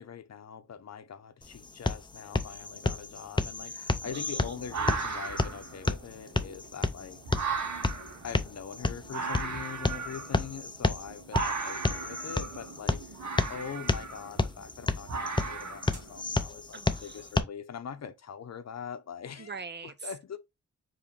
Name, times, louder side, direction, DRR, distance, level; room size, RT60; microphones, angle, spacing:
voice 1, 0.0-7.2 8.2-13.1 13.5-19.5 19.8-20.4, left 7 dB, 60° left, 0.7 m, -43 dB
sound 1, 1.4-17.4, left 3 dB, 15° left, 0.5 m, -32 dB
sound 2, 4.0-16.4, right 4 dB, 70° right, 1.5 m, -37 dB
voice 2, 4.1-4.5 13.1-13.5 16.7-17.3 19.4-20.1, right 5 dB, 35° right, 0.6 m, -44 dB
4.8 x 3.1 x 3.2 m
cardioid pair, 70°, 30 cm